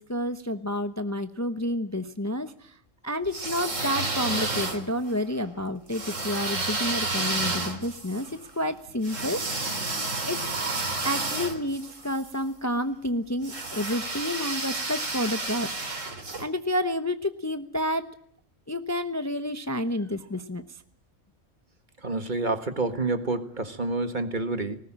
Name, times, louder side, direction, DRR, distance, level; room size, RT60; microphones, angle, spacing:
voice 1, 0.0-2.8 3.0-8.3 8.6-9.7 10.2-10.4 11.0-15.7 16.4-18.0 18.7-20.6, left 1 dB, 15° left, 9 dB, 0.9 m, -30 dB
sound 1, 3.2-5.1 5.9-12.3 13.4-16.4, right 2 dB, 80° right, 3.5 m, -31 dB
voice 2, 22.0-24.8, right 3 dB, 40° right, 8 dB, 1.8 m, -28 dB
20.0 x 18.0 x 8.9 m, 0.64 s
omnidirectional pair, 1.3 m